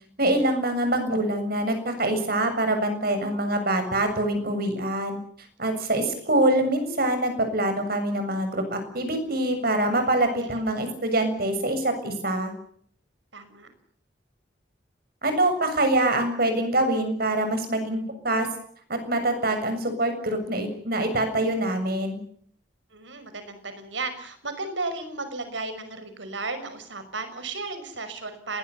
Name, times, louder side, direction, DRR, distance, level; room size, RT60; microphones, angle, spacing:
voice 1, 0.2-5.2 5.6-12.5 15.2-18.5 18.9-22.2, right 1 dB, 55° right, 7 dB, 7.2 m, -25 dB
voice 2, 13.3-13.7 22.9-28.6, right 3 dB, 85° right, 10 dB, 5.8 m, -34 dB
30.0 x 21.0 x 7.0 m, 0.63 s
head